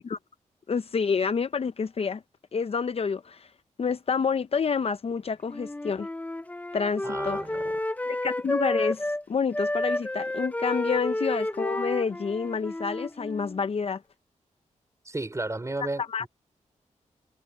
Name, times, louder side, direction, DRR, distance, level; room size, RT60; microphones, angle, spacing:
voice 1, 0.7-2.2 2.5-3.5 3.8-6.1 6.7-7.4 8.1-14.0 16.1-16.3, left 5 dB, 50° left, 0.7 m, -28 dB
Wind instrument woodwind instrument, 5.5-9.2 9.5-13.6, left 1 dB, 10° left, 0.9 m, -31 dB
voice 2, 7.0-7.8 15.0-16.3, right 2 dB, 25° right, 5.0 m, -34 dB
cardioid pair, 80°, 13 cm